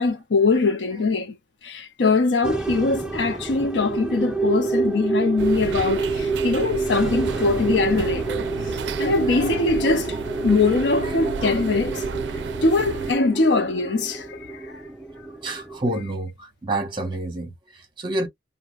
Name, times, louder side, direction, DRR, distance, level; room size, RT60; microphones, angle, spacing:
voice 1, 0.0-1.4 1.6-8.5 9.0-10.2 10.4-12.0 12.6-14.8, left 3 dB, 75° left, 0.6 m, -22 dB
sound 1, 2.4-16.0, right 4 dB, 5° right, 0.3 m, -28 dB
sound 2, 5.4-13.1, right 5 dB, 75° right, 0.4 m, -33 dB
voice 2, 8.8-10.0 11.0-11.4 15.4-18.3, right 1 dB, 25° right, 1.0 m, -30 dB
2.4 x 2.2 x 3.1 m
head